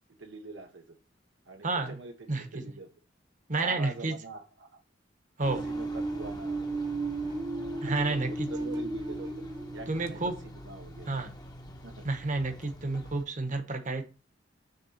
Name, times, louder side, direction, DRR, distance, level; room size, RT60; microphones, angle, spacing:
voice 1, 0.2-1.0 1.5-2.9 3.6-4.8 5.5-6.6 7.8-7.9 8.3-9.4 9.7-10.2 10.7-11.2 11.8-12.1, right 3 dB, 75° right, 4 dB, 0.8 m, -44 dB
voice 2, 1.6-2.0 2.3-2.6 3.5-4.1 5.4-5.6 7.8-8.5 9.9-10.3 11.1-11.3 12.0-14.0, right 3 dB, 45° right, 6 dB, 1.1 m, -30 dB
sound 1, 5.4-13.2, equal, 20° left, 1.0 m, -46 dB
sound 2, 5.4-11.1, right 2 dB, 20° right, 0.7 m, -35 dB
6.6 x 3.6 x 5.7 m, 0.34 s
head